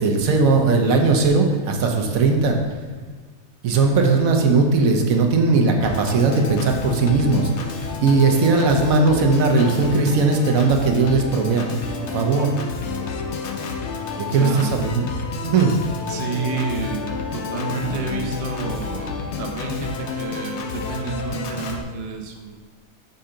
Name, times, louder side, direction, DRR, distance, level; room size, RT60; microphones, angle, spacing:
voice 1, 0.0-2.6 3.6-7.5 8.0-11.7 12.0-12.5 14.2-15.1 15.4-15.7, right 3 dB, 75° right, 3 dB, 1.2 m, -18 dB
Organ, 5.8-21.8, left 5 dB, 60° left, 0.8 m, -30 dB
voice 2, 14.3-14.8 16.1-22.7, right 4 dB, 40° right, 2 dB, 0.5 m, -30 dB
5.6 x 5.4 x 3.7 m, 1.4 s
omnidirectional pair, 1.5 m